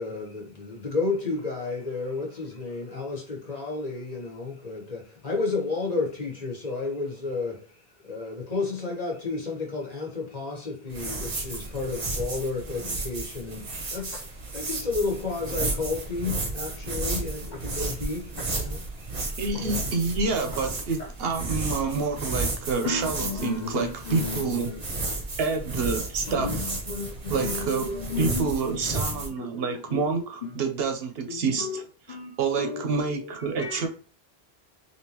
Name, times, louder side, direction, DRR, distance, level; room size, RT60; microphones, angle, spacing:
voice 1, 0.0-7.6 8.0-14.2 14.5-19.1 19.5-19.8, left 3 dB, 40° left, 1.2 m, -31 dB
sound 1, 10.9-29.3, right 3 dB, 35° right, 0.7 m, -33 dB
voice 2, 19.4-24.7 25.4-26.7 27.3-33.9, right 4 dB, 70° right, 0.8 m, -28 dB
voice 3, 22.8-25.2 26.3-30.2 31.3-31.8 32.1-33.9, left 5 dB, 55° left, 0.5 m, -35 dB
3.5 x 2.7 x 2.9 m
omnidirectional pair, 1.1 m